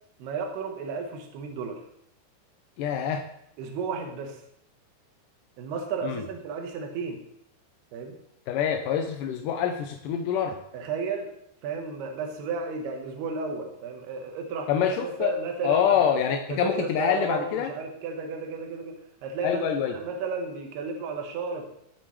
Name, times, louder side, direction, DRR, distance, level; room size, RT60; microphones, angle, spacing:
voice 1, 0.2-1.8 3.6-4.4 5.6-7.2 7.9-8.2 10.7-11.3 11.6-16.0 16.5-19.0 19.2-21.7, right 4 dB, 80° right, 3 dB, 3.1 m, -33 dB
voice 2, 2.8-3.2 6.0-6.2 8.5-10.6 14.7-15.3 15.6-17.7 19.4-19.9, left 8 dB, 80° left, 4 dB, 1.9 m, -25 dB
18.0 x 6.7 x 3.2 m, 0.74 s
omnidirectional pair, 4.7 m